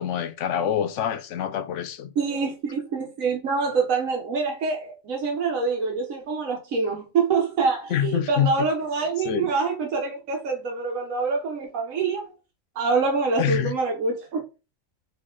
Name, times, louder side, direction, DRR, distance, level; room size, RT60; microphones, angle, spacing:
voice 1, 0.0-2.1 7.9-8.5 9.2-9.5 13.4-13.7, left 10 dB, 70° left, 0.9 m, -25 dB
voice 2, 2.2-12.2 12.7-14.4, right 4 dB, 90° right, 1.3 m, -25 dB
4.7 x 2.8 x 3.7 m
omnidirectional pair, 1.4 m